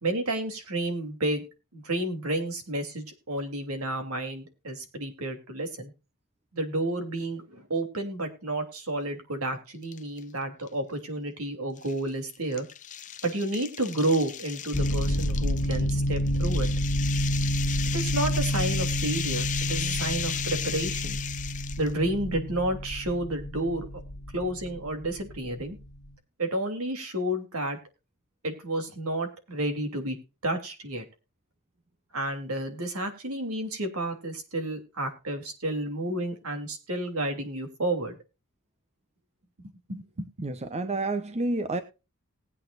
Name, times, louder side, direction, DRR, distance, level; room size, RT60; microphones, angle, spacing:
voice 1, 0.0-1.4 1.7-5.9 6.5-12.6 13.2-16.7 17.9-21.2 21.8-23.9 24.3-25.8 26.4-27.8 28.4-30.2 30.4-31.0 32.1-38.2 39.9-40.2, right 1 dB, 75° right, 3.1 m, -31 dB
sound 1, 9.8-10.2 10.7-10.8 11.8-21.9, left 10 dB, 35° left, 0.7 m, -36 dB
sound 2, 14.7-26.0, equal, 55° left, 1.7 m, -29 dB
voice 2, 40.4-41.8, right 2 dB, 30° right, 0.9 m, -29 dB
19.5 x 8.5 x 2.5 m
head